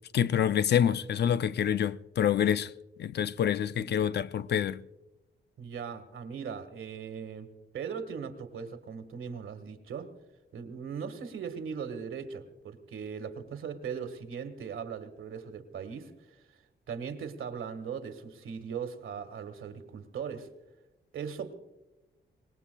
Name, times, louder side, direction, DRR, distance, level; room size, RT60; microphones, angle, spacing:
voice 1, 0.1-2.7 3.0-4.8, left 9 dB, 55° left, 0.4 m, -27 dB
voice 2, 5.6-10.1 10.5-16.4 16.9-20.5 21.1-21.5, right 6 dB, 85° right, 1.6 m, -39 dB
25.0 x 20.0 x 2.3 m
wide cardioid pair, 175°, 20 cm